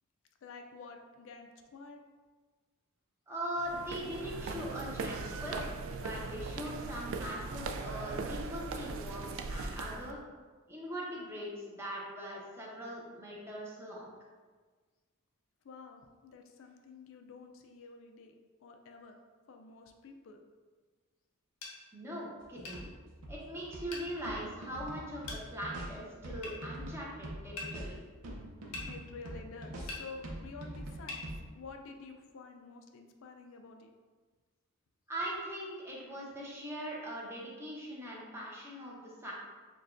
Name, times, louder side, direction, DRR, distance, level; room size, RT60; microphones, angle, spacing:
voice 1, 0.4-2.0 15.6-18.3 18.6-19.2 19.5-20.4 28.3-28.4 28.9-33.9, left 4 dB, 60° left, 4 dB, 0.4 m, -50 dB
voice 2, 3.3-10.2 10.7-14.1 21.9-22.9 23.3-28.0 35.1-39.3, equal, 10° right, -5 dB, 0.7 m, -41 dB
sound 1, 3.6-10.1, right 4 dB, 65° right, 0.3 m, -39 dB
sound 2, 21.6-21.8 22.6-22.8 23.9-24.1 25.3-25.4 26.4-26.6 27.6-27.7 28.7-28.9 29.9-30.0 31.1-31.2, left 3 dB, 85° left, 0.8 m, -41 dB
sound 3, 22.4-31.4, right 1 dB, 80° right, 0.7 m, -45 dB
6.4 x 2.3 x 2.5 m, 1.4 s
head